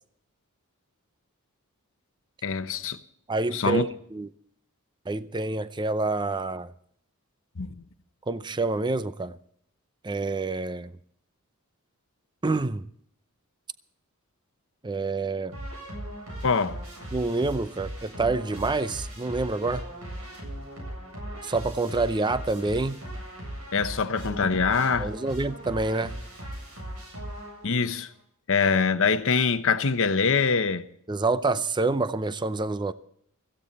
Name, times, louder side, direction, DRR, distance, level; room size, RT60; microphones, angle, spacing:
voice 1, 2.4-3.0 3.5-3.8 7.6-7.8 16.4-16.8 23.7-25.1 27.6-28.1 28.5-30.9, left 5 dB, 60° left, 0.9 m, -24 dB
voice 2, 3.3-4.3 5.1-6.7 8.3-9.4 10.0-10.9 12.4-12.9 14.8-15.5 17.1-19.9 21.4-23.0 25.0-26.2 31.1-32.9, right 3 dB, 20° right, 0.5 m, -27 dB
sound 1, 15.5-27.9, right 1 dB, 70° right, 7.9 m, -38 dB
16.0 x 15.0 x 4.1 m
head